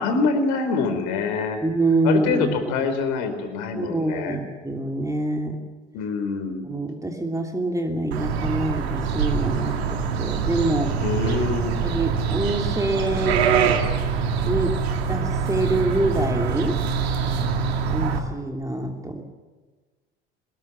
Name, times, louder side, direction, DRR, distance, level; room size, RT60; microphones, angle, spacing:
voice 1, 0.0-1.6 2.0-4.4 5.9-6.6 11.0-11.8, left 4 dB, 65° left, 8 dB, 4.4 m, -25 dB
voice 2, 1.6-2.9 3.7-5.6 6.6-10.9 11.6-13.8 14.4-14.8 15.1-16.8 17.9-19.2, right 2 dB, 10° right, 2 dB, 3.2 m, -26 dB
sound 1, 8.1-18.2, right 6 dB, 80° right, 2.4 m, -24 dB
22.5 x 21.0 x 7.4 m, 1.3 s
hypercardioid pair, 65°, 31 cm